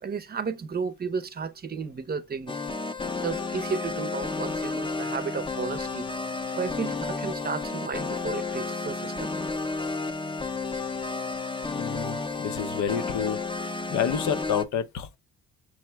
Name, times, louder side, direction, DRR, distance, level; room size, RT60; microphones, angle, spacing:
voice 1, 0.0-2.6 3.0-6.1 6.5-9.3, right 5 dB, 30° right, 0.6 m, -33 dB
sound 1, 2.5-14.6, left 3 dB, 15° left, 0.5 m, -31 dB
voice 2, 11.7-15.2, left 8 dB, 70° left, 0.7 m, -30 dB
6.1 x 2.1 x 3.3 m
cardioid pair, 90°, 30 cm